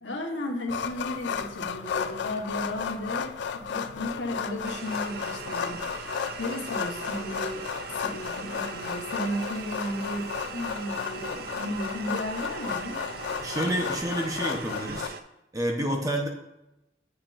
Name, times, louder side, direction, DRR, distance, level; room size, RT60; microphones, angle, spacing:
voice 1, 0.0-13.0, left 1 dB, 85° left, 1 dB, 1.2 m, -34 dB
sound 1, 0.7-15.1, left 7 dB, 65° left, 0.3 m, -34 dB
sound 2, 4.6-15.2, right 6 dB, 55° right, 0.4 m, -40 dB
voice 2, 13.4-15.1 15.5-16.3, right 1 dB, 20° right, 1 dB, 0.8 m, -29 dB
8.7 x 6.2 x 2.5 m, 0.90 s
head